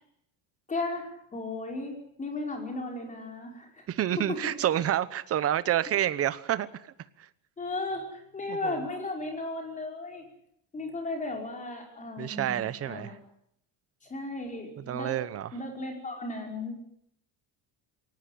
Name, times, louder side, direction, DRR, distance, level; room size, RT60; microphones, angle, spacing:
voice 1, 0.7-3.9 4.2-4.4 7.6-10.3 10.7-13.1 14.0-15.2 15.5-16.8, left 2 dB, 15° left, 3 dB, 5.3 m, -35 dB
voice 2, 3.9-6.7 7.2-7.3 8.5-8.8 12.2-13.1 14.9-15.5, right 11 dB, 30° right, 15 dB, 1.0 m, -28 dB
22.5 x 18.5 x 9.9 m, 0.72 s
cardioid pair, 180°, 45 cm